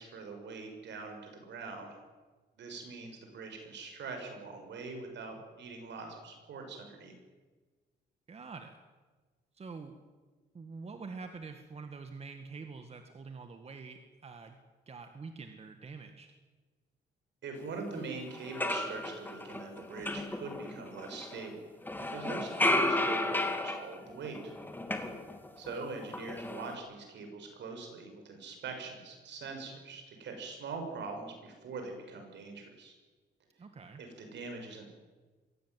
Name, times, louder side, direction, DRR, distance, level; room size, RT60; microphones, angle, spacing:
voice 1, 0.0-2.0 2.6-7.1 17.4-21.6 22.0-24.5 25.6-32.9 34.0-34.9, right 4 dB, 70° right, 4 dB, 6.5 m, -43 dB
voice 2, 8.3-8.8 9.5-10.0 10.5-14.6 14.9-16.3 22.3-22.5 33.6-34.0, right 4 dB, 35° right, 6 dB, 1.8 m, -46 dB
sound 1, 17.9-18.0 18.3-21.5 21.8-25.7 26.0-26.7, left 1 dB, 10° left, 2.4 m, -34 dB
23.0 x 17.0 x 9.5 m, 1.4 s
cardioid pair, 130°, 19 cm